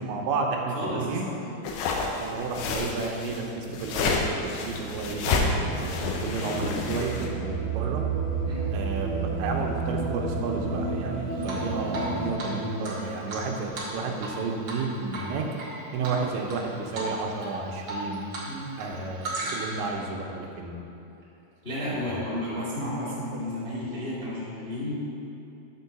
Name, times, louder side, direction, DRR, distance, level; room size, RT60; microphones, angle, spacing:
voice 1, 0.0-1.3 2.2-4.1 4.6-8.0 8.7-15.4 15.9-18.2 18.8-20.9 21.9-22.5, right 3 dB, 85° right, 1 dB, 3.2 m, -32 dB
voice 2, 0.7-1.3 3.6-3.8 5.5-5.7 8.4-8.6 16.0-16.1 18.4-18.6 21.6-24.9, left 1 dB, 35° left, -9 dB, 0.9 m, -32 dB
sound 1, 1.6-7.3, left 4 dB, 80° left, 2.9 m, -29 dB
sound 2, 3.7-12.3, right 4 dB, 70° right, 2.7 m, -32 dB
Drip, 11.4-12.1 12.4-12.5 12.8-14.4 14.6-14.8 15.1-15.7 16.0-16.6 16.9-17.1 17.4-18.5 18.7-19.8, right 2 dB, 50° right, 1.9 m, -35 dB
9.9 x 4.6 x 6.9 m, 2.9 s
omnidirectional pair, 5.1 m